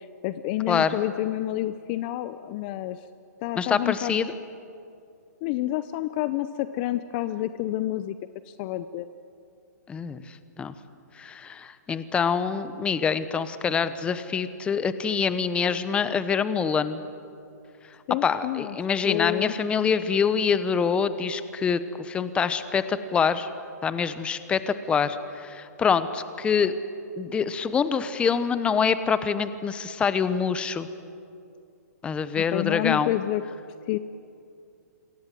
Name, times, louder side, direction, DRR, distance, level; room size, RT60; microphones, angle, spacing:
voice 1, 0.0-3.0 3.4-4.2 5.4-8.2 8.5-9.1 18.1-18.8 19.0-19.6 32.4-33.4 33.9-34.0, left 14 dB, 35° left, 13 dB, 0.7 m, -29 dB
voice 2, 3.6-4.3 9.9-10.7 11.1-17.0 18.2-23.5 23.8-26.7 27.2-30.9 32.0-33.1, left 6 dB, 10° left, 13 dB, 0.9 m, -25 dB
27.5 x 23.0 x 7.7 m, 2.5 s
hypercardioid pair, 150°, 9 cm